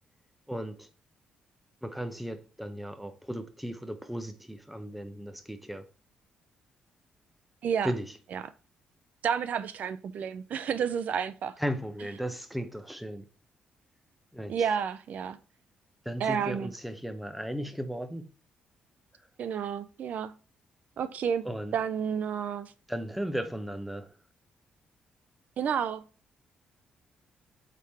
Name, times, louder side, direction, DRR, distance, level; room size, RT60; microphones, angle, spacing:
voice 1, 0.5-0.9 1.8-5.9 7.8-8.2 11.6-13.3 14.3-14.7 16.0-18.3 21.4-21.8 22.9-24.1, equal, 5° right, 0.9 m, -36 dB
voice 2, 9.2-11.6 14.5-15.4 16.2-16.7 19.4-20.3 21.0-21.5 21.7-22.7 25.6-26.0, right 7 dB, 60° right, 0.5 m, -30 dB
8.1 x 3.8 x 4.3 m
cardioid pair, 95°, 3 cm